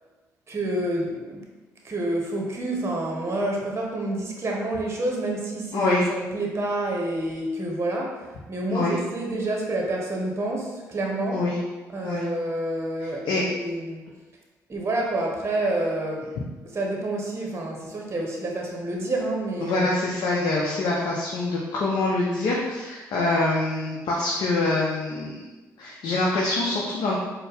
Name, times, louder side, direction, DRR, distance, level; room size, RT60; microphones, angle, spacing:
voice 1, 0.5-1.5 1.8-11.5 11.9-14.0 14.7-16.3 16.6-20.0, right 1 dB, 35° right, 0 dB, 0.8 m, -28 dB
voice 2, 5.7-6.0 8.7-9.0 11.3-11.6 12.0-12.2 13.0-13.4 19.6-25.4 25.8-27.1, left 2 dB, 65° left, -4 dB, 0.6 m, -25 dB
4.2 x 2.1 x 3.4 m, 1.2 s
hypercardioid pair, 50°, 8 cm